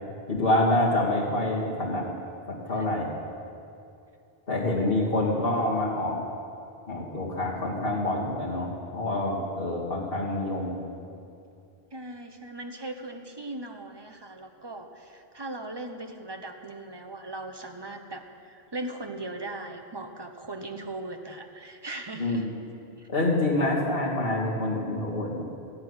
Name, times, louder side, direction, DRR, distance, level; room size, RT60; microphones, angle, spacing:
voice 1, 0.3-2.1 2.5-3.1 4.5-6.2 6.9-10.7 22.2-22.5 23.1-25.4, left 1 dB, 60° left, -4 dB, 2.6 m, -26 dB
voice 2, 11.9-22.4 23.0-23.1, right 2 dB, 25° right, 5 dB, 1.0 m, -39 dB
14.5 x 8.4 x 9.7 m, 2.6 s
omnidirectional pair, 1.1 m